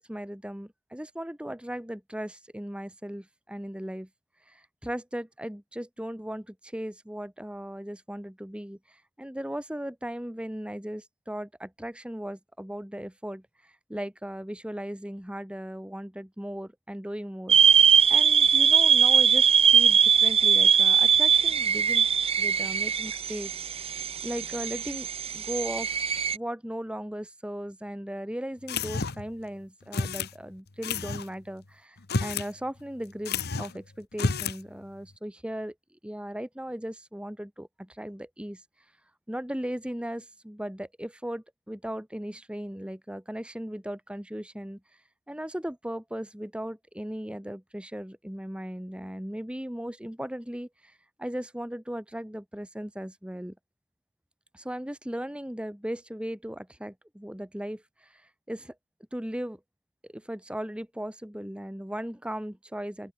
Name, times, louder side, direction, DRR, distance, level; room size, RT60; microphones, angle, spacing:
voice 1, 0.0-4.1 4.5-17.8 18.1-22.1 22.4-23.5 24.2-25.9 26.3-35.7 36.0-38.6 39.3-44.8 45.3-53.5 54.5-58.2 58.5-58.7 59.1-59.6 60.1-63.1, equal, 5° right, 1.1 m, -37 dB
sound 1, 17.5-26.4, right 7 dB, 25° right, 0.9 m, -21 dB
sound 2, 28.7-29.3 29.9-30.3 30.8-31.3 32.0-32.5 32.8-32.9 33.2-33.8 34.1-34.6, left 4 dB, 45° left, 1.1 m, -30 dB
open air
head